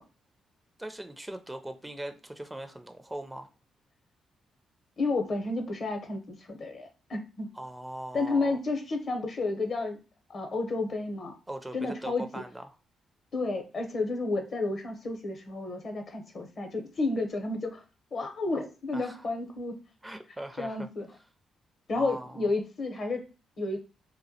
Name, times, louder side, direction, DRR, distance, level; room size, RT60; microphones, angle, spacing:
voice 1, 0.8-3.5 7.5-8.6 11.5-12.7 18.9-19.2 20.0-20.9 21.9-22.5, right 1 dB, 15° right, 0.4 m, -40 dB
voice 2, 5.0-7.5 8.1-10.0 10.3-11.4 11.7-12.2 13.3-17.8 18.1-19.8 20.6-21.1 21.9-23.3 23.6-23.8, left 3 dB, 55° left, 0.7 m, -31 dB
2.3 x 2.1 x 2.6 m
supercardioid pair, 50°, 0 cm